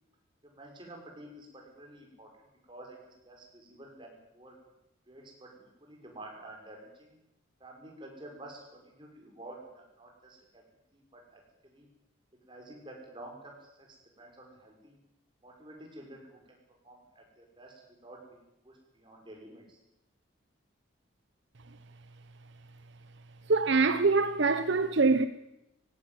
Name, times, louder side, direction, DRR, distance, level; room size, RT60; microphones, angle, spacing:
voice 1, 0.4-2.4 2.7-4.6 5.1-7.2 7.6-10.6 10.9-11.9 12.5-15.0 15.4-16.4 16.8-19.8, right 1 dB, 25° right, 6.2 m, -50 dB
voice 2, 23.5-25.3, right 3 dB, 60° right, 0.8 m, -24 dB
20.0 x 17.0 x 9.4 m
head